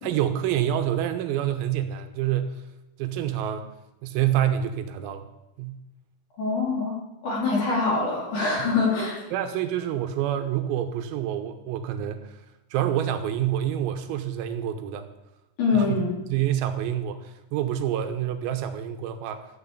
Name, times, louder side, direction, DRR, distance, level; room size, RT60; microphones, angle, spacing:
voice 1, 0.0-2.6 3.0-3.7 4.0-5.3 5.6-5.8 9.3-12.4 12.7-15.1 15.7-16.0 16.3-19.4, right 11 dB, 85° right, 8 dB, 3.8 m, -27 dB
voice 2, 6.4-9.2 15.6-16.2, left 4 dB, 40° left, -4 dB, 4.4 m, -24 dB
14.5 x 8.6 x 8.3 m, 0.95 s
omnidirectional pair, 6.0 m